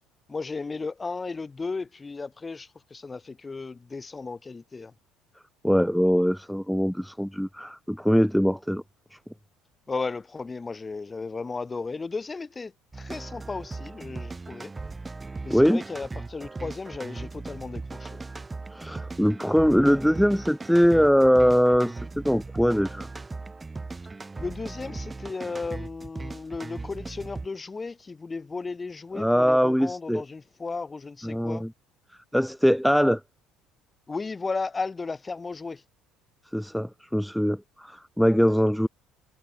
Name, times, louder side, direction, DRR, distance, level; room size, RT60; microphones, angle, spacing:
voice 1, 0.3-4.9 9.9-14.7 15.4-18.2 24.4-31.6 34.1-35.8, left 4 dB, 25° left, 6.1 m, -35 dB
voice 2, 5.6-8.8 9.1-9.2 15.5-15.8 18.7-23.1 29.1-30.2 31.2-31.7 32.3-33.2 36.5-38.9, equal, ahead, 2.1 m, -22 dB
sound 1, 12.9-27.5, right 3 dB, 20° right, 3.9 m, -38 dB
hypercardioid pair, 65°, 0 cm